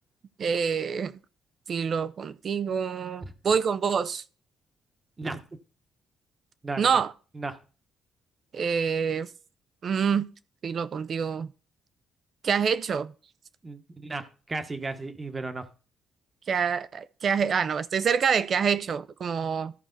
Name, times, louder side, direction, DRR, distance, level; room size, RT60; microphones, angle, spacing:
voice 1, 0.4-1.1 1.7-4.2 6.8-7.1 8.5-9.3 9.8-10.3 10.6-11.5 12.4-13.1 16.5-19.7, right 6 dB, 50° right, 0.5 m, -26 dB
voice 2, 6.6-7.0 7.3-7.6 13.6-15.6, right 3 dB, 25° right, 1.2 m, -34 dB
13.5 x 4.7 x 3.9 m
cardioid pair, 90°, 0 cm